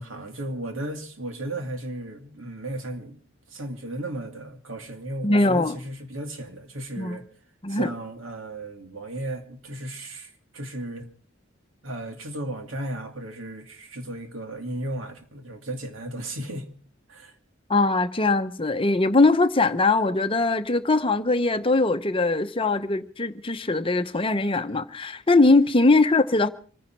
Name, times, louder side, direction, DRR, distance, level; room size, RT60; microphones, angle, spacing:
voice 1, 0.0-3.2 3.5-7.2 7.7-11.1 11.8-16.7 17.1-17.3, right 1 dB, 80° right, 2.4 m, -35 dB
voice 2, 5.2-5.8 7.0-7.2 7.6-7.9 17.7-26.5, left 3 dB, 25° left, 0.9 m, -21 dB
26.5 x 10.5 x 4.6 m
head